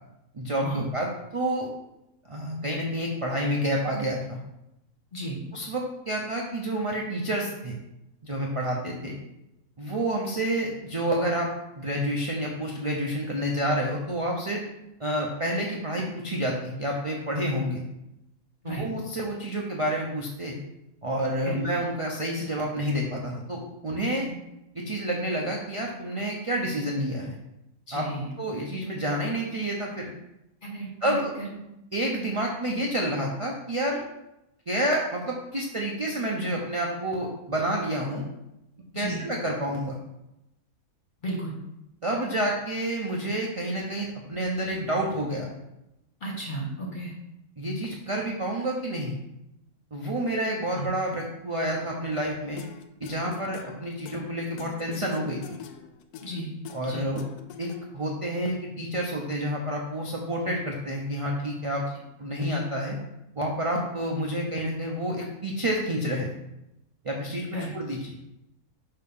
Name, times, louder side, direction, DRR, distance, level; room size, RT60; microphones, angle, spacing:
voice 1, 0.3-1.7 2.2-4.4 5.5-7.7 8.2-9.1 9.8-11.5 11.8-14.6 15.0-17.8 18.6-20.5 21.0-24.3 24.7-27.4 27.9-28.1 28.4-30.1 31.0-31.3 31.9-34.0 34.7-38.2 38.9-40.0 42.0-45.5 47.6-49.1 49.9-52.6 53.0-55.6 56.7-57.3 57.6-61.8 62.2-63.0 63.4-66.3 67.0-68.2, right 1 dB, 45° right, -1 dB, 0.4 m, -29 dB
voice 2, 27.9-28.3 30.6-31.5 38.9-39.2 41.2-41.5 46.2-47.1 50.7-50.9 56.2-56.5 56.9-57.1 67.5-67.8, right 1 dB, 35° left, -2 dB, 1.5 m, -34 dB
sound 1, 52.6-58.1, left 8 dB, 80° left, 1.1 m, -45 dB
6.6 x 2.9 x 5.3 m, 0.88 s
omnidirectional pair, 1.6 m